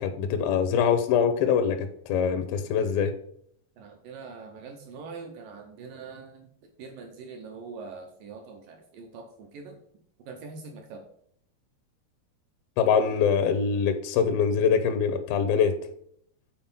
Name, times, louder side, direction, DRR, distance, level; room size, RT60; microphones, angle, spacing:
voice 1, 0.0-3.1 12.8-15.7, left 7 dB, 85° left, 8 dB, 2.1 m, -24 dB
voice 2, 3.8-9.8 10.3-11.1, right 4 dB, 80° right, 3 dB, 2.0 m, -43 dB
7.8 x 4.4 x 5.4 m, 0.66 s
omnidirectional pair, 4.9 m